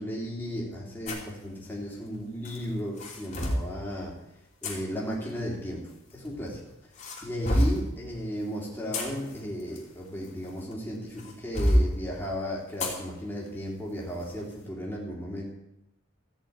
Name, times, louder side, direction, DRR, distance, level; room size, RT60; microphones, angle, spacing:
voice 1, 0.0-4.1 4.6-6.6 7.2-15.4, equal, 10° left, -4 dB, 3.2 m, -35 dB
sound 1, 1.1-1.3 2.4-3.7 4.6-4.8 5.9-6.5 7.0-7.9 8.6-10.7 11.2-11.9 12.8-13.0 13.5-13.6 14.1-14.3, equal, 35° left, 3.0 m, -27 dB
14.5 x 6.8 x 8.7 m, 0.87 s
head